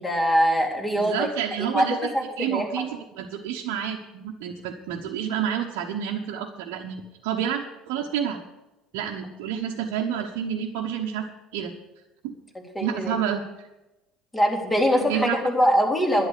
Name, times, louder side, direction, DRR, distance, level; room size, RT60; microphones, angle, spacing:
voice 1, 0.0-1.3 1.6-2.8 12.6-13.2 14.3-16.3, equal, 15° left, 1 dB, 3.7 m, -23 dB
voice 2, 0.9-2.1 2.4-8.4 8.9-11.3 11.5-11.7 12.2-12.4 12.8-13.7 15.1-15.7 16.1-16.2, right 9 dB, 70° right, -1 dB, 1.2 m, -29 dB
11.0 x 10.5 x 6.7 m, 0.99 s
hypercardioid pair, 65°, 0 cm